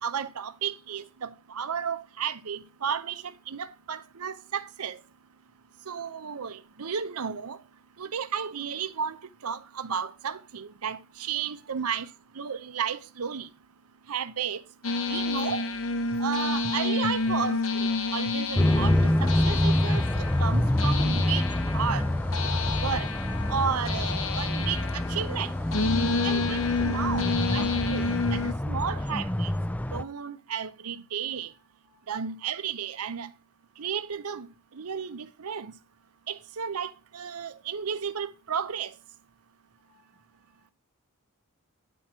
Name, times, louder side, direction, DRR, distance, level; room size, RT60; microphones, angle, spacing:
voice 1, 0.0-5.0 5.9-7.6 8.0-9.2 9.4-12.1 12.4-13.5 14.1-14.6 15.1-15.7 16.2-17.6 18.1-22.0 22.8-23.1 23.5-25.5 26.2-28.4 28.7-29.5 29.9-31.5 32.1-33.3 33.8-34.5 34.8-35.7 36.3-38.9, right 7 dB, 85° right, 0.7 m, -33 dB
sound 1, 14.8-28.5, left 3 dB, 65° left, 0.7 m, -30 dB
voice 2, 17.2-17.5 31.4-32.2 39.9-40.7, right 2 dB, 40° right, 1.3 m, -57 dB
sound 2, 18.6-30.0, left 1 dB, 5° left, 0.4 m, -26 dB
9.8 x 4.5 x 6.1 m
head